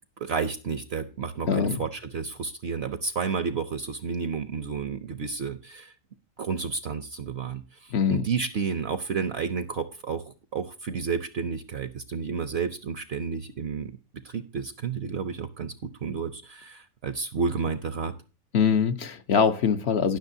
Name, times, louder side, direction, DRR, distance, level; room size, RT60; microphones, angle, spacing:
voice 1, 0.2-5.9 6.4-13.9 14.2-18.1, right 5 dB, 60° right, 0.8 m, -31 dB
voice 2, 1.5-1.9 7.9-8.2 18.5-20.2, left 6 dB, 55° left, 0.9 m, -23 dB
17.0 x 6.4 x 2.7 m
omnidirectional pair, 1.4 m